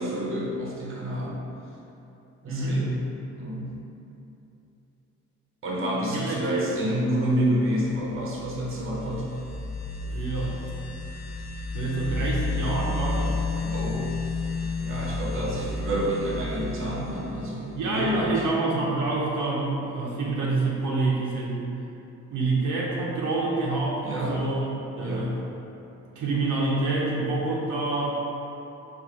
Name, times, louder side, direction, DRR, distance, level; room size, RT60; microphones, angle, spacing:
voice 1, 0.0-1.4 2.4-3.0 3.4-3.7 5.6-9.3 13.7-14.1 14.8-18.4 24.0-24.4 25.0-25.3, equal, 45° right, -4 dB, 0.8 m, -28 dB
voice 2, 2.4-2.8 6.1-6.9 10.0-10.6 11.7-13.4 17.8-21.6 22.3-25.3 26.2-28.1, right 3 dB, 85° right, -5 dB, 0.7 m, -27 dB
sound 1, 8.0-18.5, left 3 dB, 65° left, 0.4 m, -32 dB
3.8 x 2.5 x 3.0 m, 2.9 s
cardioid pair, 90°, 30 cm